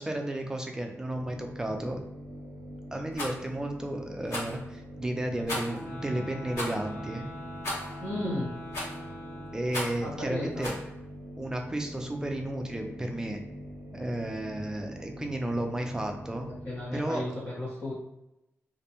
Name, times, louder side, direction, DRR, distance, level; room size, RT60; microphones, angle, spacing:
voice 1, 0.0-2.0 2.9-7.3 9.5-10.8 11.4-13.4 13.9-16.5 16.9-17.2, right 1 dB, 15° right, 3 dB, 0.3 m, -33 dB
sound 1, 1.1-16.9, equal, 80° right, 0.4 m, -44 dB
Rattle, 3.1-3.4 4.3-4.6 5.5-5.8 6.5-6.8 7.6-8.0 8.7-9.1 9.7-10.0 10.6-10.8, left 1 dB, 85° left, 1.3 m, -34 dB
sound 2, 5.6-10.1, left 1 dB, 60° left, 1.2 m, -44 dB
voice 2, 8.0-8.5 10.0-10.7 16.6-17.9, left 1 dB, 40° left, -9 dB, 0.8 m, -34 dB
2.6 x 2.1 x 2.8 m, 0.88 s
wide cardioid pair, 140°, 5 cm